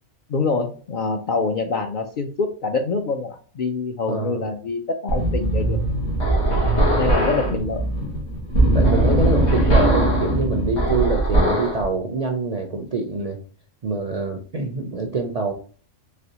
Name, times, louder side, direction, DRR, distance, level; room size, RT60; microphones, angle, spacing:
voice 1, 0.3-5.8 6.8-7.8, left 4 dB, 60° left, 3 dB, 0.5 m, -25 dB
voice 2, 4.1-4.5 8.7-13.4 13.8-15.5, right 3 dB, 50° right, 2 dB, 0.4 m, -25 dB
sound 1, 5.1-11.8, right 1 dB, 90° left, 1.7 m, -20 dB
4.1 x 3.3 x 2.8 m, 0.41 s
omnidirectional pair, 1.2 m